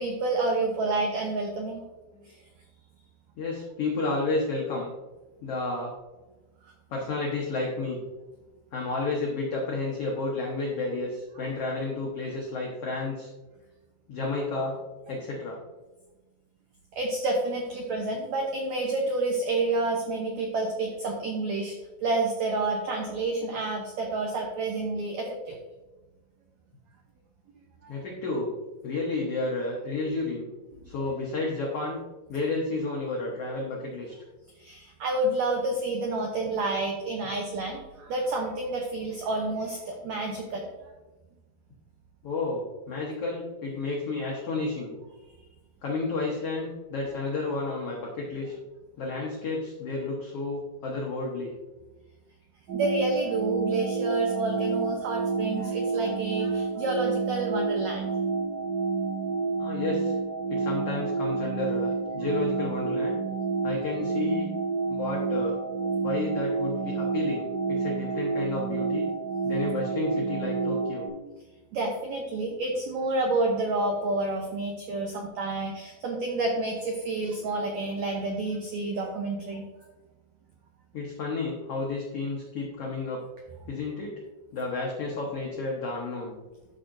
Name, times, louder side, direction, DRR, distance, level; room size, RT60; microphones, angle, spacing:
voice 1, 0.0-1.8 2.2-2.4 6.6-6.7 16.9-21.7 22.0-25.6 27.8-28.0 34.6-40.7 52.7-58.1 71.7-79.7, right 2 dB, 85° right, 1 dB, 1.5 m, -29 dB
voice 2, 3.4-4.9 5.4-5.9 6.9-8.0 8.7-13.3 14.1-14.8 15.1-15.6 27.9-28.5 28.8-30.5 30.8-32.0 32.3-34.1 42.2-45.0 45.8-48.5 49.0-51.5 59.6-60.2 60.5-63.2 63.6-64.5 64.9-65.6 66.0-69.1 69.4-71.1 75.0-75.1 80.9-83.2 83.7-84.1 84.5-86.3, left 3 dB, 90° left, -2 dB, 1.3 m, -31 dB
sound 1, 52.7-71.1, right 4 dB, 45° right, 1.4 m, -29 dB
12.5 x 5.8 x 2.6 m, 1.1 s
omnidirectional pair, 4.4 m